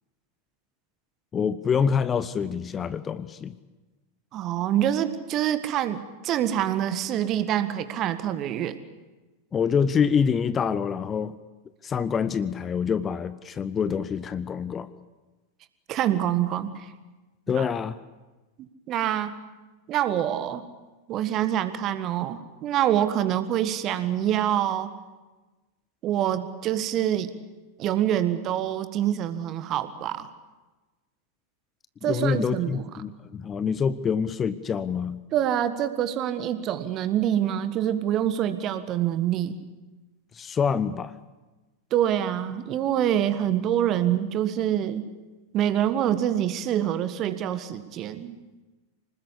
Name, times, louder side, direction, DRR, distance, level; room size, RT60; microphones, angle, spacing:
voice 1, 1.3-3.6 9.5-11.3 11.8-14.9 17.5-18.0 32.0-35.2 40.3-41.1, left 6 dB, 20° left, 15 dB, 0.8 m, -26 dB
voice 2, 4.3-8.8 15.9-16.9 17.5-17.6 18.9-19.4 19.9-20.6 21.1-24.9 26.0-27.3 27.8-30.3 32.0-32.8 35.3-39.5 41.9-45.1 45.5-48.3, right 11 dB, 35° right, 12 dB, 1.6 m, -26 dB
25.5 x 20.0 x 8.5 m, 1.2 s
figure-of-eight pair, 90°, 0 cm